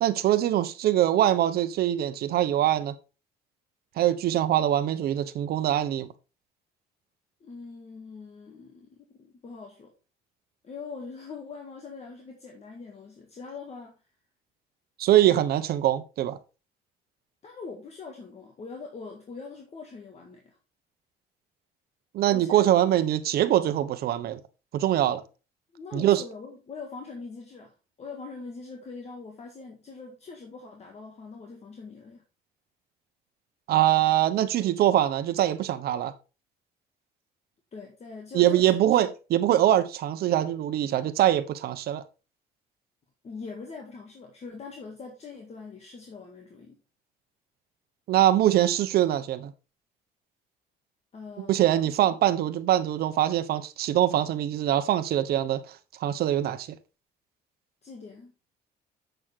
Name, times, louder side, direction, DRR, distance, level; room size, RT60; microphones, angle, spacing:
voice 1, 0.0-2.9 4.0-6.1 15.0-16.4 22.1-24.4 24.7-25.2 25.9-26.2 33.7-36.1 38.3-42.0 48.1-49.5 51.4-56.7, right 12 dB, 65° right, 0.9 m, -23 dB
voice 2, 7.4-9.9 10.6-14.0 17.4-20.6 22.3-22.7 25.7-27.7 28.0-32.2 37.7-39.0 43.2-46.8 51.1-51.7 57.8-58.3, left 4 dB, 40° left, 1.8 m, -42 dB
8.0 x 6.4 x 3.6 m
cardioid pair, 110°, 17 cm